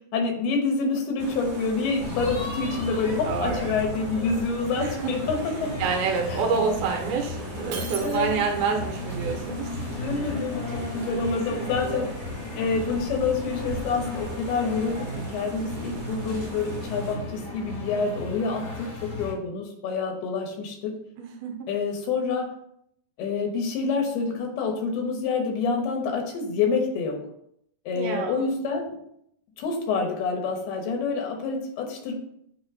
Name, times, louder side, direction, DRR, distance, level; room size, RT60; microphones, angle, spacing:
voice 1, 0.1-5.7 6.3-6.4 8.0-8.3 9.9-12.1 12.6-20.9 21.7-22.5 23.2-27.2 27.9-28.9 29.6-32.1, left 4 dB, 90° left, 2 dB, 3.2 m, -27 dB
sound 1, 1.2-17.2, right 2 dB, 45° right, 1.3 m, -40 dB
sound 2, 2.0-19.3, left 2 dB, 45° left, 1.3 m, -35 dB
voice 2, 3.2-3.7 4.8-5.1 5.8-9.8 10.6-10.9 11.3-12.1 21.2-21.7 27.9-28.5, right 5 dB, 85° right, 2 dB, 2.8 m, -28 dB
Shatter, 7.7-8.7, right 5 dB, 60° right, 1.9 m, -37 dB
8.2 x 2.8 x 4.9 m, 0.72 s
omnidirectional pair, 4.4 m